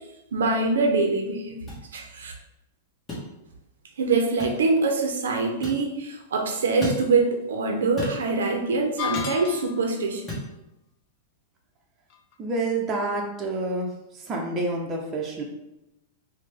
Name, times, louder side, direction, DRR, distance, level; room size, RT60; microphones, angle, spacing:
voice 1, 0.3-1.6 1.9-2.3 4.0-10.3, right 3 dB, 85° right, 3 dB, 0.5 m, -24 dB
sound 1, 1.7-1.8 3.1-3.3 4.4-4.6 5.6-5.8 6.8-7.0 8.0-8.2 9.2-9.4 10.3-10.5, left 1 dB, 15° left, 1.1 m, -33 dB
sound 2, 9.0-10.0, left 9 dB, 50° left, 0.3 m, -32 dB
voice 2, 12.4-13.9 14.1-15.4, right 2 dB, 25° right, -1 dB, 0.6 m, -28 dB
3.1 x 2.1 x 3.3 m, 0.90 s
hypercardioid pair, 130°, 0 cm